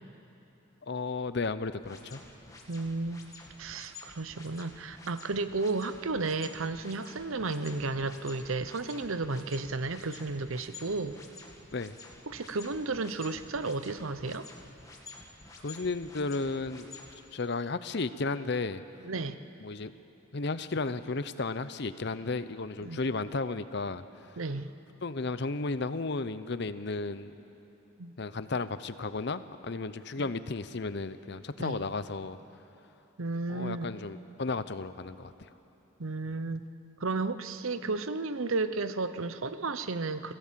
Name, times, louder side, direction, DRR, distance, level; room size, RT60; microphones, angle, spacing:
voice 1, 0.8-2.2 11.7-11.9 15.6-16.9 17.3-18.8 19.6-19.9 20.3-24.0 25.0-27.3 28.2-32.4 33.5-35.5, left 3 dB, 55° left, 13 dB, 0.7 m, -33 dB
sound 1, 1.8-17.1, left 3 dB, 15° left, 1.8 m, -50 dB
voice 2, 2.7-3.2 3.6-11.2 12.3-14.5 19.0-19.4 22.8-23.0 24.4-24.7 28.0-28.2 30.2-30.3 31.6-31.9 33.2-33.9 36.0-36.7 37.0-40.3, right 3 dB, 75° right, 12 dB, 0.8 m, -33 dB
25.5 x 16.0 x 7.5 m, 2.9 s
head